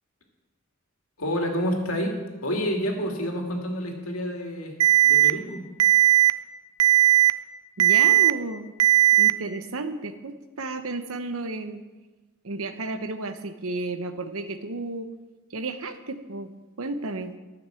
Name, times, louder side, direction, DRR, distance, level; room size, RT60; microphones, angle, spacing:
voice 1, 1.2-4.8 5.0-5.7, equal, 75° left, 2 dB, 2.2 m, -29 dB
Alarm, 4.8-5.3 5.8-6.3 6.8-7.3 7.8-8.3 8.8-9.3, right 13 dB, 90° right, 0.5 m, -17 dB
voice 2, 7.8-8.7 9.2-11.8 12.4-15.1 15.5-16.5 16.8-17.3, right 3 dB, 70° right, 10 dB, 0.9 m, -32 dB
13.5 x 6.1 x 7.6 m, 1.2 s
head